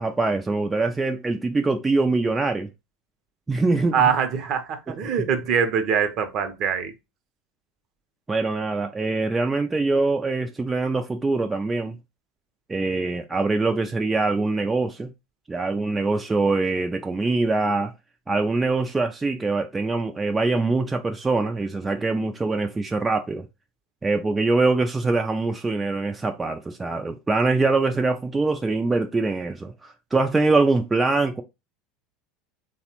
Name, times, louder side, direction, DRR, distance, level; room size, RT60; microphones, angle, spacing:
voice 1, 0.0-2.7 3.5-4.1 4.9-5.0 8.3-12.0 12.7-15.1 15.5-17.9 18.3-23.5 24.0-31.4, right 3 dB, 15° right, 0.3 m, -23 dB
voice 2, 3.9-6.9, right 7 dB, 50° right, 0.6 m, -23 dB
3.2 x 2.1 x 2.9 m
hypercardioid pair, 100°, 0 cm